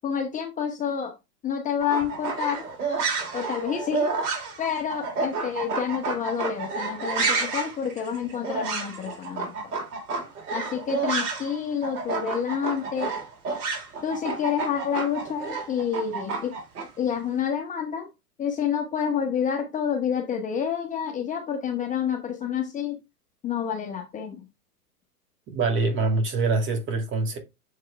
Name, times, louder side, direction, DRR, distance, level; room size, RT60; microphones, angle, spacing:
voice 1, 0.0-1.1 1.4-2.7 3.3-4.1 4.6-9.7 10.5-13.1 14.0-16.5 17.0-18.1 18.4-23.0 23.4-24.5, left 8 dB, 15° left, 1.0 m, -28 dB
sound 1, 1.8-11.6 11.8-16.9, right 4 dB, 65° right, 3.5 m, -30 dB
voice 2, 25.5-27.4, right 3 dB, 25° right, 2.3 m, -24 dB
7.2 x 4.7 x 3.3 m
hypercardioid pair, 115°, 48 cm